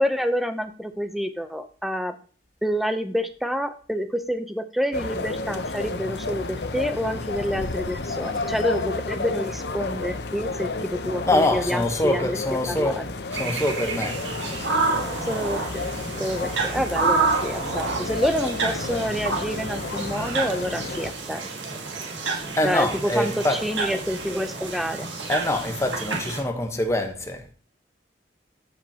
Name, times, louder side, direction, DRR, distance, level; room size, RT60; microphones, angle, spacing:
voice 1, 0.0-2.2 2.6-12.4 12.7-13.0 15.3-15.9 16.2-21.5 22.6-25.1, equal, ahead, 0.6 m, -28 dB
sound 1, 4.9-21.1, left 3 dB, 65° left, 0.8 m, -31 dB
voice 2, 11.3-13.0 13.3-14.8 22.6-23.6 25.3-27.5, left 1 dB, 15° left, 1.0 m, -25 dB
sound 2, 13.3-26.4, right 4 dB, 90° right, 1.8 m, -29 dB
14.0 x 5.2 x 2.9 m
head